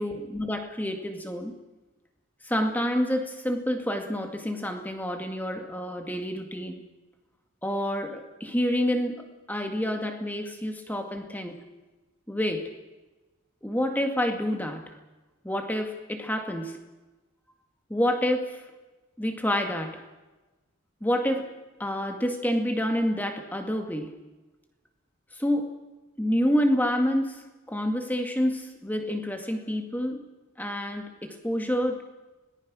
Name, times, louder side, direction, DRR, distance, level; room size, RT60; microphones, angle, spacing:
voice 1, 0.0-1.5 2.4-6.8 7.6-11.5 12.3-12.6 13.6-15.0 15.4-16.8 17.9-18.6 19.2-20.0 21.0-21.5 21.8-24.2 25.4-25.7 26.2-30.2 30.6-32.0, equal, 10° left, 4 dB, 2.1 m, -28 dB
26.0 x 19.0 x 6.3 m, 1.1 s
head